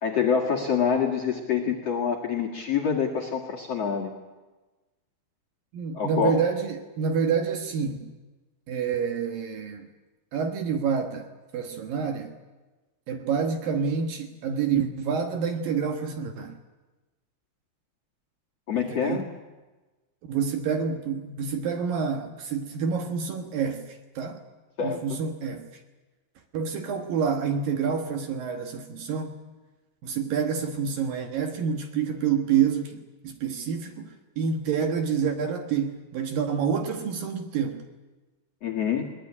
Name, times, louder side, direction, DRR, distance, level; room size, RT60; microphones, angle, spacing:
voice 1, 0.0-4.1 5.9-6.4 18.7-19.2 24.8-25.2 38.6-39.0, left 7 dB, 50° left, 2.2 m, -26 dB
voice 2, 5.7-8.1 8.7-9.9 10.3-11.3 11.5-12.3 13.1-16.6 18.9-19.3 20.3-24.4 24.8-25.7 26.5-29.3 30.0-33.0 33.2-37.8, right 6 dB, 65° right, 2.7 m, -28 dB
21.0 x 20.0 x 9.7 m
omnidirectional pair, 5.2 m